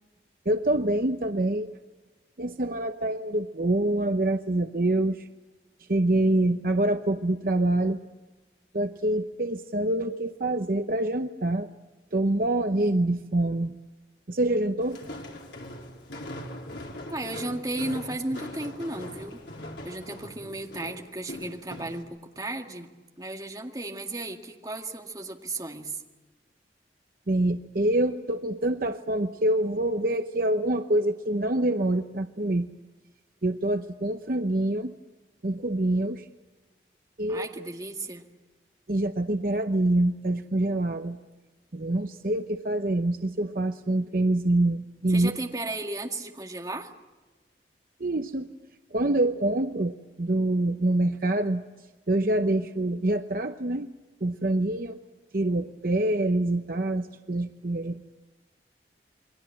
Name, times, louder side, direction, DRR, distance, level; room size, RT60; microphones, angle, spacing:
voice 1, 0.5-1.8 2.4-5.3 5.9-8.0 8.7-11.7 12.1-13.8 14.3-15.0 27.3-32.7 33.4-34.9 35.4-36.3 37.2-37.5 38.9-41.2 41.7-45.3 48.0-48.5 48.9-51.6 52.1-53.9 54.2-55.0 55.3-58.0, right 1 dB, 50° right, 7 dB, 0.8 m, -26 dB
Walk footsteps, 14.8-22.0, left 1 dB, 80° left, 4.3 m, -41 dB
voice 2, 17.1-19.4 19.8-22.9 23.2-26.0 37.3-38.2 45.1-46.9, right 2 dB, 20° right, 2 dB, 2.0 m, -34 dB
28.5 x 22.5 x 7.8 m, 1.2 s
head